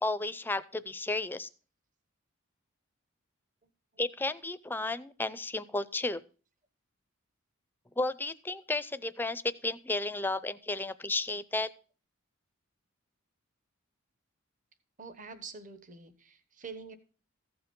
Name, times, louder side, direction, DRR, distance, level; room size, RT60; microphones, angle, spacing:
voice 1, 0.0-1.5 4.0-6.2 8.0-11.7, left 2 dB, 10° left, 14 dB, 0.5 m, -33 dB
voice 2, 15.0-17.0, right 5 dB, 40° right, 10 dB, 1.0 m, -46 dB
14.5 x 5.9 x 5.3 m, 0.38 s
head